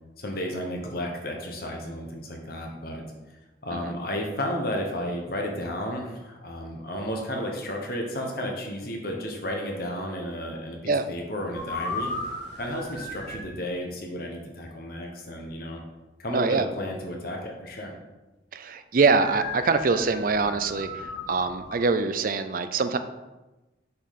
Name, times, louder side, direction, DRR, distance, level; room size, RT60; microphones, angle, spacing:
voice 1, 0.2-3.0 3.6-12.1 12.5-15.8 16.2-17.9, equal, 55° left, 1 dB, 1.1 m, -33 dB
sound 1, 11.5-13.5 19.2-21.9, left 2 dB, 80° left, 1.8 m, -36 dB
voice 2, 16.3-16.7 18.5-23.0, right 4 dB, 50° right, 10 dB, 0.4 m, -24 dB
6.9 x 5.3 x 4.2 m, 1.1 s
head